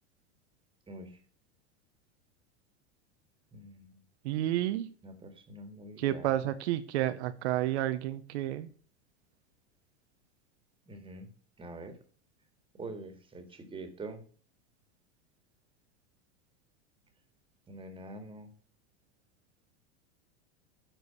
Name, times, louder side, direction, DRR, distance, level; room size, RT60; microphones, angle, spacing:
voice 1, 0.9-1.2 3.5-4.0 5.0-6.3 10.9-11.3 11.6-12.0 12.7-14.2 17.7-18.5, right 2 dB, 15° right, 7 dB, 1.9 m, -45 dB
voice 2, 4.2-4.9 6.0-8.7, right 13 dB, 70° right, 9 dB, 0.9 m, -30 dB
10.0 x 4.6 x 6.9 m, 0.43 s
supercardioid pair, 115°, 34 cm